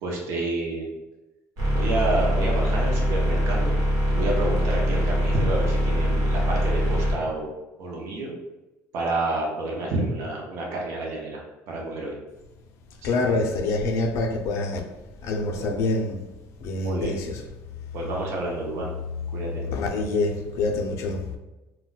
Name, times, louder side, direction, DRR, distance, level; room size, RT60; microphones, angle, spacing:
voice 1, 0.0-0.9 1.7-7.5 7.8-8.3 8.9-12.1 13.3-13.5 15.5-15.8 16.8-17.1 17.9-18.9 19.3-19.6, right 2 dB, 55° right, 0.6 m, -29 dB
sound 1, 1.6-7.1, equal, 70° right, 1.1 m, -23 dB
voice 2, 13.0-14.8 15.2-16.3 16.6-17.5 19.6-21.4, left 3 dB, 55° left, 0.4 m, -26 dB
2.2 x 2.1 x 3.8 m
cardioid pair, 165°, 6 cm